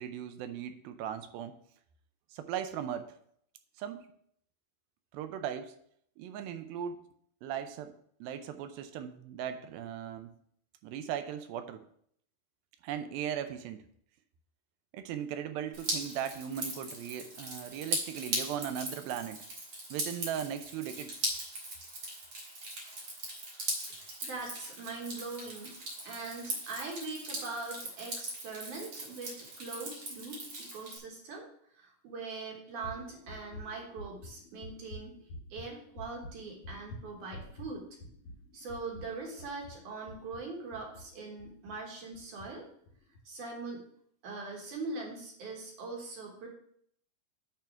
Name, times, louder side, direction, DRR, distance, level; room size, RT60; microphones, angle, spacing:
voice 1, 0.0-1.5 2.3-3.1 3.8-4.0 5.1-5.7 6.2-7.0 7.4-7.9 8.2-10.3 10.8-11.9 12.8-13.8 14.9-19.4 19.9-21.2, right 9 dB, 85° right, 9 dB, 2.5 m, -38 dB
Drip, 15.7-31.0, right 2 dB, 50° right, 1.9 m, -39 dB
voice 2, 24.2-25.7 26.0-31.5 31.7-35.2 35.5-37.8 38.5-42.6 43.3-43.8 44.2-46.5, right 3 dB, 65° right, -1 dB, 2.6 m, -42 dB
sound 1, 32.8-41.8 42.1-42.5 42.9-43.2, left 1 dB, 65° left, 1.4 m, -48 dB
8.8 x 3.6 x 5.7 m, 0.67 s
omnidirectional pair, 4.2 m